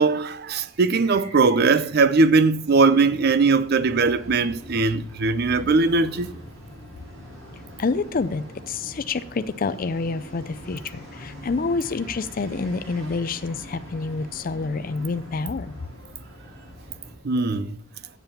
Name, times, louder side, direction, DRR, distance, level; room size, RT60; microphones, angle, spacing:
voice 1, 0.0-6.3 17.2-17.8, right 4 dB, 50° right, 0.5 m, -20 dB
sound 1, 1.0-17.1, equal, 85° right, 5.3 m, -43 dB
voice 2, 7.8-15.7, left 4 dB, 45° left, 0.4 m, -28 dB
8.0 x 7.1 x 7.1 m
head